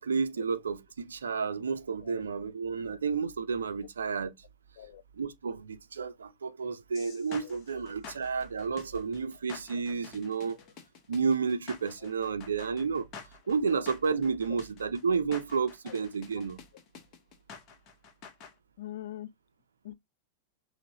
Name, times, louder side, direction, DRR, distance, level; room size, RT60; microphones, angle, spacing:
voice 1, 0.0-4.3 5.2-10.6 11.1-13.1 13.5-16.6, right 5 dB, 70° right, 0.4 m, -31 dB
sound 1, 6.9-18.5, left 6 dB, 35° left, 1.0 m, -48 dB
voice 2, 18.8-19.3 19.8-19.9, left 13 dB, 55° left, 0.4 m, -43 dB
5.9 x 2.1 x 2.8 m
figure-of-eight pair, 90°, 0 cm